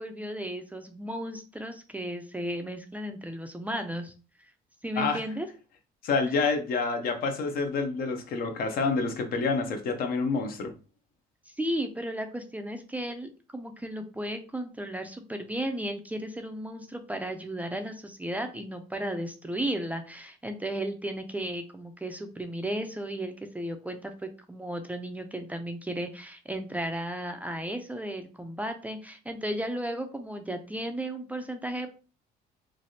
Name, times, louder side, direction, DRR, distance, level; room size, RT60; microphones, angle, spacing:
voice 1, 0.0-4.1 4.4-4.5 4.8-5.5 11.5-31.9, right 1 dB, 10° right, 5 dB, 0.4 m, -34 dB
voice 2, 6.0-10.7, left 4 dB, 60° left, 6 dB, 0.6 m, -28 dB
3.3 x 2.3 x 2.7 m, 0.35 s
cardioid pair, 110°, 17 cm